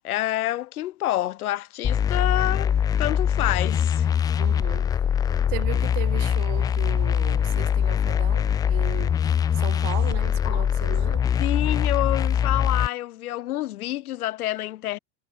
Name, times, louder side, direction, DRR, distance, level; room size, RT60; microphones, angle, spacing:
voice 1, 0.0-4.1 10.4-10.7 11.4-15.0, left 14 dB, 80° left, 1.4 m, -28 dB
sound 1, 1.8-12.9, left 8 dB, 10° left, 0.4 m, -23 dB
voice 2, 4.4-4.9 5.5-9.2 9.5-11.3, right 39 dB, 45° right, 7.4 m, -36 dB
supercardioid pair, 140°, 44 cm